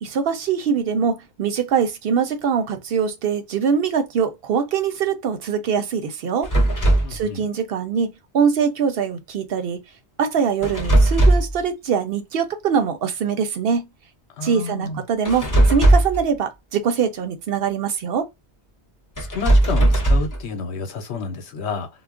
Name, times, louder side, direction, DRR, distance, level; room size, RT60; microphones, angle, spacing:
voice 1, 0.0-6.5 7.1-9.8 10.2-13.8 14.4-18.3, right 6 dB, 65° right, 0.7 m, -23 dB
sound 1, 6.4-7.2 10.6-11.6 15.2-16.2 19.2-20.4, right 1 dB, 20° left, 0.6 m, -17 dB
voice 2, 7.0-7.5 14.4-15.0 19.2-21.9, left 4 dB, 75° left, 1.0 m, -30 dB
2.3 x 2.0 x 3.6 m
omnidirectional pair, 1.1 m